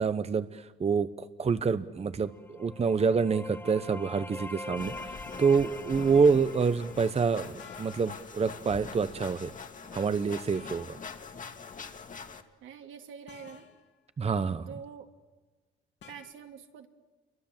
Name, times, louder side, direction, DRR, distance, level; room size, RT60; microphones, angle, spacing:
voice 1, 0.0-9.5 9.9-11.0 14.2-14.7, right 5 dB, 30° right, 12 dB, 1.0 m, -27 dB
sound 1, 2.2-7.9, left 2 dB, 10° left, 1.1 m, -44 dB
sound 2, 4.8-12.4, left 5 dB, 40° left, 2.2 m, -44 dB
sound 3, 5.3-5.5 7.6-8.4 10.5-11.1 13.3-13.9 16.0-16.3, left 6 dB, 65° left, 3.1 m, -51 dB
voice 2, 12.6-13.7 14.7-15.1 16.1-16.9, right 7 dB, 80° right, 4 dB, 2.8 m, -46 dB
29.0 x 23.5 x 7.5 m, 1.2 s
cardioid pair, 90°, 20 cm